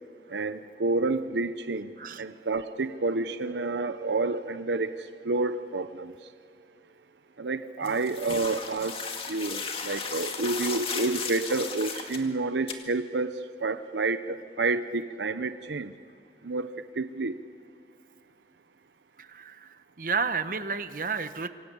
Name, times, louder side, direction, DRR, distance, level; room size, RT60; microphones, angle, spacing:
voice 1, 0.3-1.9 2.2-6.1 7.4-9.0 9.3-15.9 16.4-17.4, right 3 dB, 80° right, 11 dB, 0.8 m, -29 dB
sound 1, 7.8-12.2 12.7-12.8, left 5 dB, 30° left, 2.2 m, -35 dB
voice 2, 19.2-19.7 20.0-21.5, right 5 dB, 50° right, 10 dB, 1.1 m, -31 dB
27.0 x 24.0 x 8.6 m, 2.4 s
head